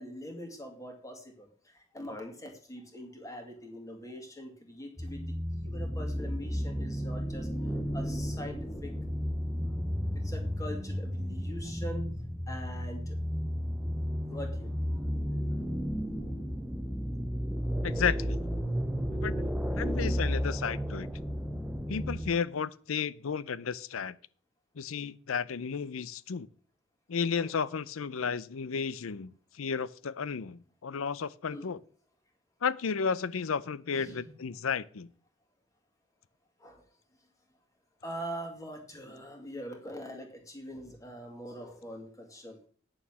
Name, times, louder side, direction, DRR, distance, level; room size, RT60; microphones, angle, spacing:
voice 1, 0.0-9.0 10.2-12.1 12.5-13.2 14.3-15.1 27.4-27.5 31.5-31.7 33.9-34.3 36.6-36.8 38.0-42.7, equal, 15° left, 2.2 m, -43 dB
sound 1, 5.0-22.3, equal, 5° right, 0.7 m, -33 dB
voice 2, 17.8-18.4 19.1-19.4 19.7-21.1 21.9-24.2 24.8-26.5 27.1-31.8 32.6-35.1, left 6 dB, 90° left, 0.6 m, -33 dB
8.9 x 7.1 x 6.1 m
head